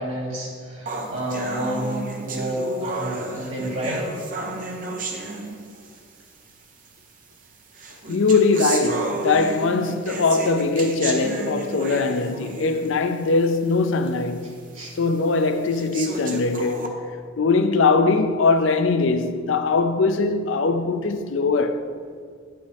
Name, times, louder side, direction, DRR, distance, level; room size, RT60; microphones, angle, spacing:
voice 1, 0.0-4.1 14.7-14.9, equal, 70° right, 2.2 m, -30 dB
sound 1, 0.9-6.0 6.9-7.0 7.7-13.0 13.4-13.5 14.1-14.2 14.8-14.9 15.7-16.9, right 2 dB, 40° right, 0.8 m, -32 dB
voice 2, 8.1-14.6 15.0-16.9 17.4-21.8, left 3 dB, 65° left, 0.5 m, -21 dB
9.4 x 7.7 x 3.5 m
head